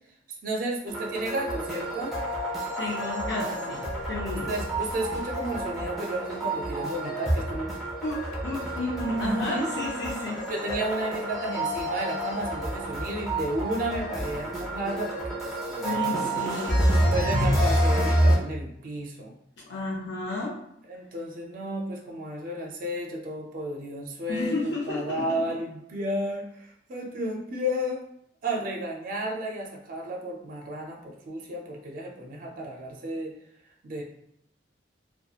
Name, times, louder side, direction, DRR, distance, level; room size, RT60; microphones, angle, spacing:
voice 1, 0.4-2.1 4.5-7.7 9.2-9.7 10.5-16.3 17.1-19.3 20.9-28.0 28.4-33.3 33.8-34.0, right 1 dB, 50° right, 0 dB, 0.4 m, -32 dB
sound 1, 0.9-18.4, right 1 dB, ahead, 0.7 m, -28 dB
voice 2, 2.8-4.6 8.0-10.4 15.8-17.4 17.6-18.0 19.7-20.6 24.3-25.4, left 2 dB, 85° left, -3 dB, 0.5 m, -32 dB
2.8 x 2.1 x 2.3 m, 0.75 s
head